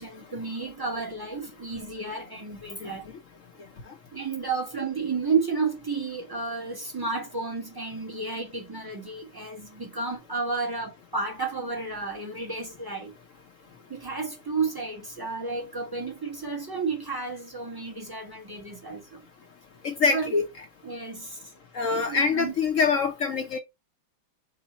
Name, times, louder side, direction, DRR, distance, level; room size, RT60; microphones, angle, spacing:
voice 1, 0.0-3.1 4.1-13.1 13.9-19.2 20.1-20.3 20.8-21.5 21.9-22.5, right 4 dB, 25° right, 0.5 m, -32 dB
voice 2, 19.8-20.4 21.7-23.6, left 5 dB, 65° left, 0.8 m, -24 dB
5.3 x 2.1 x 4.1 m
omnidirectional pair, 2.2 m